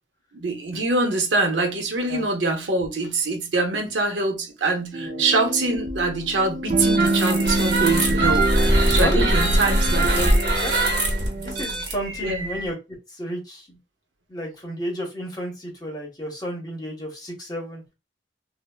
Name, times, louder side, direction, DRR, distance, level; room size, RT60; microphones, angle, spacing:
voice 1, 0.3-10.3 12.2-12.5, right 3 dB, 85° right, 0.7 m, -24 dB
sound 1, 4.9-11.6, right 1 dB, 40° right, 0.4 m, -26 dB
sound 2, 6.8-12.7, right 1 dB, 60° right, 1.0 m, -22 dB
voice 2, 8.6-9.5 10.1-11.0 11.3-13.8 14.3-17.8, equal, 20° left, 0.9 m, -32 dB
3.2 x 2.0 x 2.2 m
head